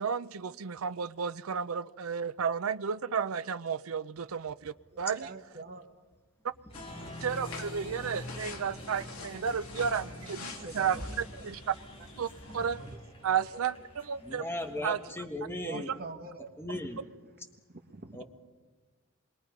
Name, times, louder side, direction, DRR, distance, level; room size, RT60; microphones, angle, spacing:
voice 1, 0.0-5.3 7.2-11.0 11.4-11.6 12.2-12.8 13.2-14.4 14.8-15.0 15.7-15.9, right 7 dB, 80° right, 14 dB, 0.6 m, -32 dB
voice 2, 4.9-5.8 9.2-9.3 10.1-10.4 10.6-11.0 12.7-13.0 13.5-13.6 15.5-16.9 17.7-18.2, right 2 dB, 45° right, 6 dB, 1.2 m, -45 dB
sound 1, 6.7-13.0, left 3 dB, 90° left, 2.3 m, -46 dB
Applause, 6.7-15.1, left 1 dB, 25° left, 3.8 m, -46 dB
voice 3, 14.2-15.9 16.6-17.0 18.1-18.2, left 1 dB, 10° left, 3 dB, 1.6 m, -37 dB
26.5 x 22.0 x 5.3 m, 1.3 s
head